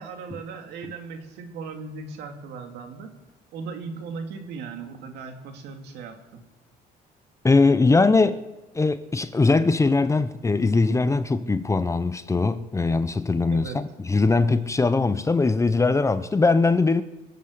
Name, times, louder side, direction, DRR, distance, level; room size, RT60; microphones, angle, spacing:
voice 1, 0.0-3.1 3.5-6.4 13.5-13.8, right 5 dB, 80° right, 2.6 m, -37 dB
voice 2, 7.4-8.4 8.7-17.0, left 3 dB, 15° left, 0.8 m, -21 dB
24.5 x 8.3 x 6.8 m
cardioid pair, 110°, 17 cm